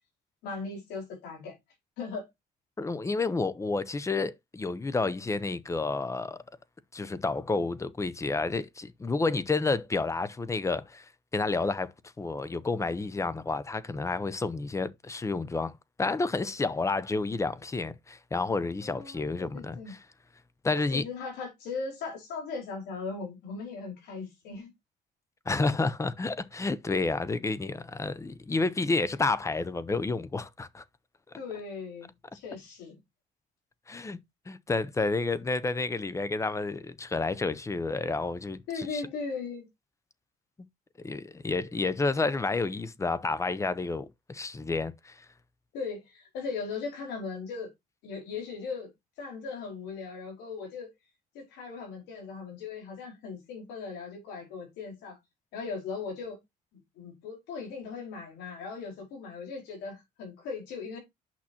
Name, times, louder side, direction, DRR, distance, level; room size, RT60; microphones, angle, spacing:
voice 1, 0.4-1.6 2.0-2.3 18.8-19.9 20.7-24.7 31.4-32.9 38.7-39.7 45.7-47.7 48.0-48.9 49.2-50.9 51.3-55.2 55.5-56.4 57.0-61.0, left 4 dB, 90° left, 4.6 m, -38 dB
voice 2, 2.8-6.4 6.9-11.0 11.3-15.7 16.0-20.0 20.6-21.0 25.5-30.8 33.9-34.2 34.5-39.0 41.0-45.3, left 3 dB, 15° left, 0.7 m, -30 dB
8.7 x 5.9 x 2.8 m
cardioid pair, 110°, 17 cm